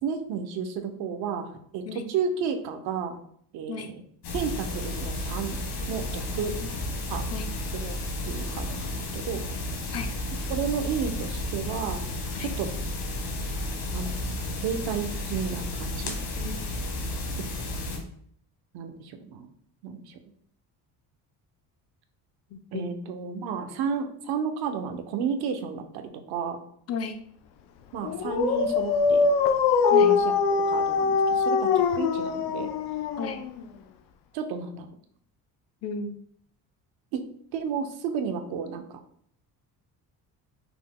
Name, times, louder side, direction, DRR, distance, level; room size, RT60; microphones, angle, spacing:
voice 1, 0.0-3.2 3.5-4.0 4.3-5.6 5.9-6.5 7.1-7.3 7.7-8.0 8.3-9.4 10.5-12.0 12.4-12.7 13.9-14.3 14.6-16.2 17.4-17.5 18.7-19.5 19.8-20.2 22.7-26.6 27.9-29.3 30.0-30.3 30.7-32.7 34.3-34.9 37.1-37.2 37.5-39.0, right 6 dB, 75° right, 6 dB, 0.7 m, -32 dB
sound 1, 4.2-18.0, left 1 dB, 70° left, 1.4 m, -32 dB
voice 2, 22.5-22.9 26.9-27.2 29.9-30.1 33.2-33.4 35.8-36.2, left 5 dB, 40° left, 7 dB, 0.5 m, -34 dB
Dog, 28.0-33.7, left 5 dB, 90° left, 0.6 m, -23 dB
5.8 x 2.2 x 3.7 m, 0.64 s
cardioid pair, 150°, 38 cm